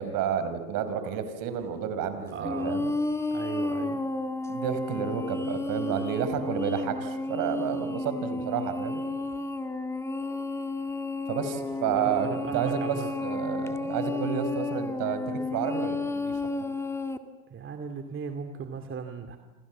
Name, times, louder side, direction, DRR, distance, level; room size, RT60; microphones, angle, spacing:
voice 1, 0.0-2.9 4.5-9.0 11.3-12.3 12.5-16.4, right 8 dB, 50° right, 10 dB, 5.1 m, -31 dB
voice 2, 2.3-2.8 3.3-4.0 12.0-13.1 17.5-19.4, right 6 dB, 30° right, 6 dB, 2.6 m, -37 dB
sound 1, 2.4-17.2, left 2 dB, 5° left, 2.0 m, -32 dB
29.0 x 27.0 x 7.5 m, 1.1 s
hypercardioid pair, 95°, 42 cm